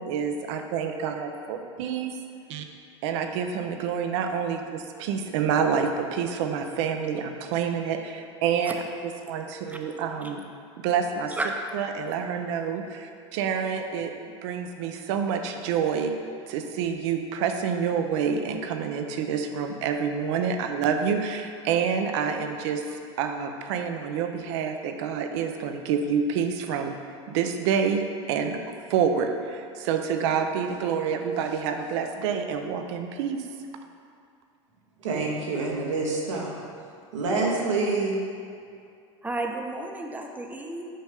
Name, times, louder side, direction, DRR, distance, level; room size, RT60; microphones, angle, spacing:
voice 1, 0.0-2.2 2.5-2.6 3.0-8.8 9.2-10.4 10.8-11.3 11.7-16.1 16.5-26.9 27.3-28.0 28.3-33.4, right 7 dB, 70° right, 6 dB, 0.7 m, -28 dB
voice 2, 35.0-36.6 37.1-38.2, right 3 dB, 90° right, -2 dB, 1.4 m, -27 dB
voice 3, 39.2-40.9, right 2 dB, 10° right, 2 dB, 0.7 m, -32 dB
7.6 x 5.3 x 3.5 m, 2.4 s
hypercardioid pair, 95°, 15 cm